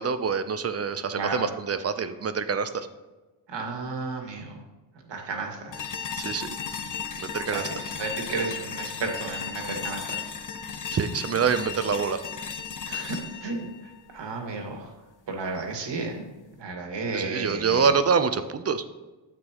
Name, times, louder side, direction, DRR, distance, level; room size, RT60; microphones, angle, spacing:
voice 1, 0.0-2.9 6.2-6.6 7.2-7.6 10.9-12.2 17.1-18.8, right 6 dB, 30° right, 11 dB, 0.7 m, -26 dB
voice 2, 1.1-1.5 3.5-4.6 5.1-5.9 7.5-10.2 12.9-14.9 15.3-16.3 16.6-17.9, right 3 dB, 55° right, 2 dB, 2.1 m, -33 dB
sound 1, 5.7-14.8, left 6 dB, 40° left, 1.0 m, -35 dB
9.7 x 7.7 x 3.0 m, 1.2 s
supercardioid pair, 70°, 50 cm